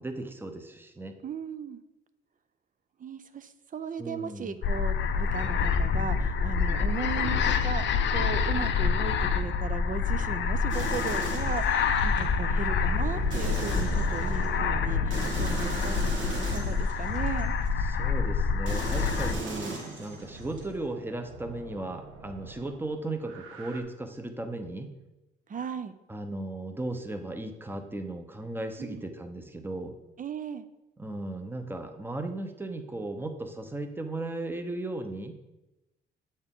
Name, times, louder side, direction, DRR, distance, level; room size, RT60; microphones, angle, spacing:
voice 1, 0.0-1.1 4.0-4.6 17.8-24.9 26.1-30.0 31.0-35.4, right 2 dB, 10° right, 7 dB, 0.8 m, -36 dB
voice 2, 1.2-1.8 3.0-17.6 25.5-25.9 28.8-29.0 30.2-30.7, right 6 dB, 40° right, 11 dB, 0.6 m, -37 dB
sound 1, 4.6-19.4, left 5 dB, 60° left, 0.6 m, -27 dB
sound 2, 10.7-12.2 13.3-14.5 15.1-17.7 18.7-20.7, right 3 dB, 65° right, 1.7 m, -38 dB
sound 3, 11.8-17.9 19.8-23.8, right 3 dB, 85° right, 0.9 m, -42 dB
7.9 x 4.3 x 3.7 m, 0.97 s
cardioid pair, 75°, 21 cm